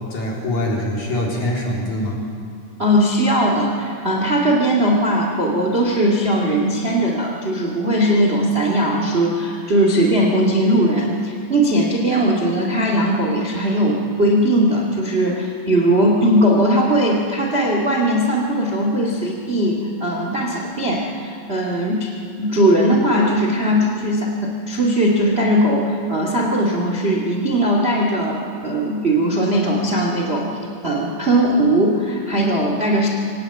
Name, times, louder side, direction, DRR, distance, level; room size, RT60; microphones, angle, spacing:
voice 1, 0.1-2.2, left 1 dB, 40° left, -2 dB, 4.8 m, -23 dB
voice 2, 2.8-22.1 22.4-30.5 30.8-33.1, right 1 dB, 35° right, 0 dB, 0.9 m, -19 dB
23.5 x 18.5 x 9.0 m, 2.4 s
omnidirectional pair, 5.4 m